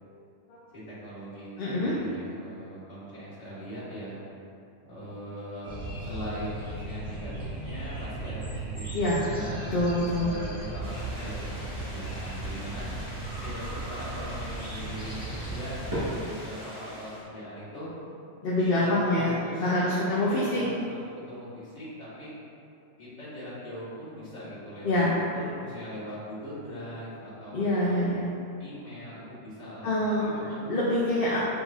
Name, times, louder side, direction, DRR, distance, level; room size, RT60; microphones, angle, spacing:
voice 1, 0.7-4.2 4.8-9.5 10.1-12.9 13.4-17.9 18.6-22.3 23.0-28.0 28.6-30.7, equal, 35° left, -11 dB, 1.6 m, -41 dB
voice 2, 1.6-1.9 8.9-9.2 9.7-10.3 18.4-19.3 19.6-20.6 24.8-25.2 27.5-28.2 29.8-30.3 30.7-31.4, left 1 dB, 55° left, -7 dB, 0.7 m, -25 dB
sound 1, 5.6-16.1, right 2 dB, 5° right, 1.0 m, -36 dB
sound 2, 10.8-17.2, equal, 30° right, 1.2 m, -40 dB
5.3 x 4.0 x 2.4 m, 2.6 s
omnidirectional pair, 1.3 m